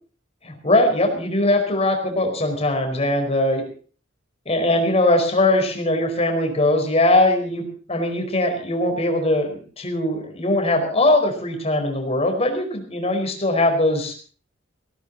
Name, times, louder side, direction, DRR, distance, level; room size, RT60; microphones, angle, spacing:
voice 1, 0.4-3.6 4.4-14.2, left 1 dB, 35° left, 4 dB, 4.6 m, -21 dB
17.5 x 17.5 x 4.1 m, 0.41 s
head